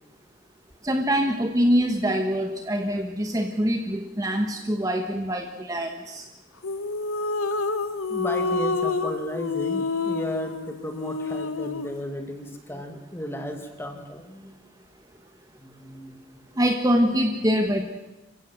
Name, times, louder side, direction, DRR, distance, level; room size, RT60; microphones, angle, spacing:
voice 1, 0.8-6.3 16.6-17.8, equal, 15° right, 5 dB, 1.2 m, -24 dB
sound 1, 6.6-12.0, left 3 dB, 90° left, 1.2 m, -28 dB
voice 2, 8.1-14.5 15.6-16.2, equal, 10° left, 6 dB, 2.2 m, -34 dB
27.5 x 15.5 x 7.7 m, 1.1 s
head